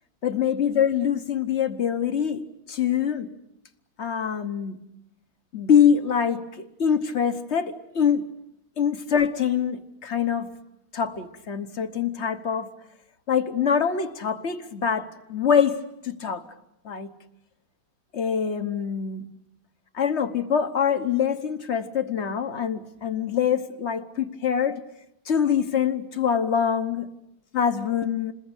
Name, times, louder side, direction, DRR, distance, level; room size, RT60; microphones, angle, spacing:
voice 1, 0.2-3.3 4.0-4.8 5.5-8.3 8.8-10.5 10.9-12.7 13.3-15.8 16.0-16.4 16.8-17.1 18.1-19.2 19.9-24.8 25.2-27.1 27.5-28.3, left 7 dB, 40° left, 9 dB, 1.0 m, -24 dB
27.5 x 21.0 x 8.2 m, 0.86 s
omnidirectional pair, 2.3 m